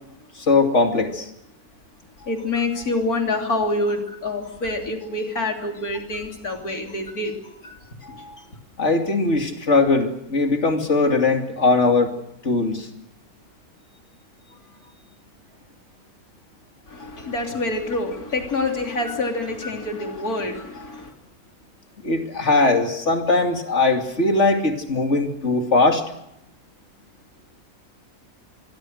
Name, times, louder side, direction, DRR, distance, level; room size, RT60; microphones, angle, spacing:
voice 1, 0.5-1.3 8.8-12.1 12.4-12.9 22.0-26.0, left 3 dB, 50° left, 4 dB, 2.9 m, -20 dB
voice 2, 2.2-8.5 16.9-21.1, left 2 dB, 75° left, 3 dB, 3.7 m, -27 dB
25.5 x 22.5 x 6.5 m, 0.80 s
omnidirectional pair, 1.6 m